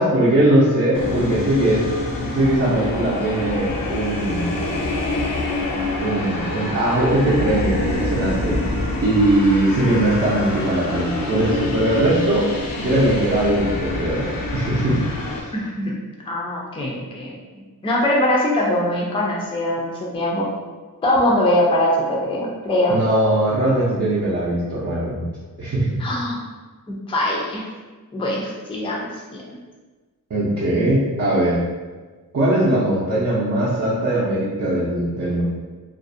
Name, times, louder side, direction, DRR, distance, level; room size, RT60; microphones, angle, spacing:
voice 1, 0.0-1.9 2.3-4.7 6.0-8.6 9.0-12.5 12.8-15.0 15.4-15.5 22.9-25.3 25.6-25.9 30.3-31.6 32.3-35.4, right 1 dB, 45° right, -9 dB, 0.5 m, -20 dB
sound 1, 0.9-15.4, left 2 dB, 75° left, 0.5 m, -26 dB
voice 2, 15.5-15.9 16.3-20.5 21.0-23.0 26.0-26.4 26.9-27.7 28.1-29.4, left 1 dB, 15° left, -3 dB, 0.4 m, -22 dB
2.5 x 2.0 x 2.5 m, 1.3 s
wide cardioid pair, 110°, 34 cm